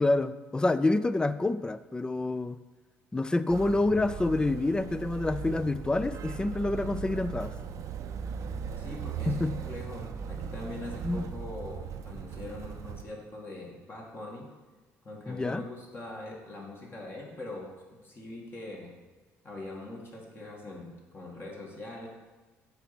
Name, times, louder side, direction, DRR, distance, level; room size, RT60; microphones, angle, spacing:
voice 1, 0.0-2.6 3.1-7.5 9.3-9.5 11.0-11.2 15.3-15.6, left 2 dB, 15° left, 14 dB, 0.4 m, -27 dB
Motor vehicle (road), 3.5-13.0, right 7 dB, 60° right, 0.5 m, -38 dB
voice 2, 8.8-14.5 15.0-17.7 18.0-18.9 19.4-22.1, left 2 dB, 40° left, -2 dB, 2.0 m, -42 dB
6.9 x 4.1 x 5.9 m, 1.3 s
supercardioid pair, 75°, 6 cm